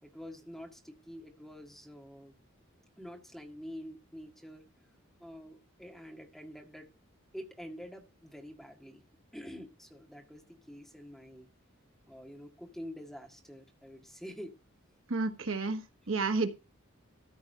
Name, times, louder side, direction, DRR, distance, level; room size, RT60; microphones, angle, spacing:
voice 1, 0.0-2.4 3.0-4.7 5.2-6.9 7.3-9.0 9.3-11.5 12.1-14.5, equal, ahead, 2 dB, 1.8 m, -47 dB
voice 2, 15.1-16.5, right 3 dB, 65° right, 7 dB, 1.3 m, -31 dB
14.0 x 4.8 x 5.5 m, 0.29 s
head